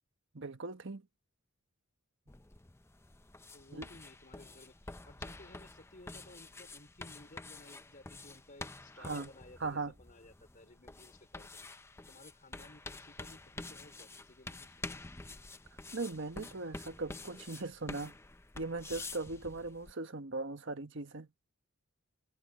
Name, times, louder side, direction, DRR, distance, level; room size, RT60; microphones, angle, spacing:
voice 1, 0.3-1.1 3.7-3.9 9.0-9.3 9.6-9.9 15.9-18.1 18.5-21.3, right 3 dB, 60° right, 1.3 m, -39 dB
sound 1, 2.3-19.9, left 2 dB, 10° left, 0.6 m, -48 dB
voice 2, 3.5-11.5 12.1-15.0, left 2 dB, 40° left, 4.5 m, -57 dB
head